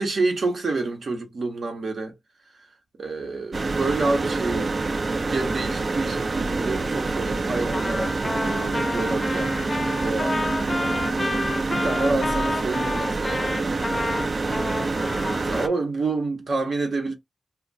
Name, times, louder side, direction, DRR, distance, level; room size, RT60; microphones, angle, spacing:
voice 1, 0.0-2.1 3.0-4.8 5.1-13.7 15.5-17.1, right 3 dB, 80° right, 0.9 m, -29 dB
sound 1, 3.5-15.7, right 3 dB, 55° right, 0.3 m, -26 dB
Trumpet, 7.7-15.7, left 2 dB, 40° left, 0.6 m, -30 dB
2.3 x 2.2 x 3.9 m
wide cardioid pair, 70°, 0 cm